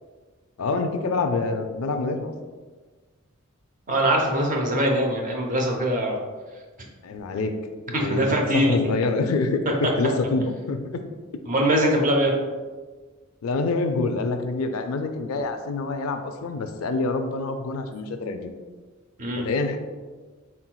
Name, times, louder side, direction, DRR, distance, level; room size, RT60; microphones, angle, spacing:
voice 1, 0.6-2.3 7.0-7.6 7.9-8.3 8.5-11.0 13.4-18.5 19.4-19.8, left 3 dB, 90° left, 7 dB, 0.4 m, -26 dB
voice 2, 3.9-6.2 7.9-8.8 11.5-12.3 19.2-19.5, right 1 dB, 40° right, 1 dB, 0.7 m, -22 dB
4.3 x 3.9 x 2.2 m, 1.4 s
head